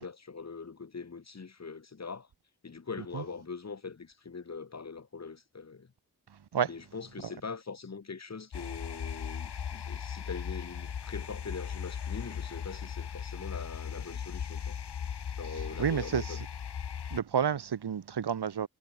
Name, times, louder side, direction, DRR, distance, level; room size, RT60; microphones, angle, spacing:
voice 1, 0.0-2.3 2.6-5.9 6.7-14.8 15.3-16.4, left 5 dB, 40° left, 4.2 m, -42 dB
sound 1, 8.5-17.2, left 8 dB, 85° left, 3.2 m, -38 dB
voice 2, 15.8-16.4 17.1-18.7, right 7 dB, 85° right, 3.2 m, -30 dB
wide cardioid pair, 170°, 39 cm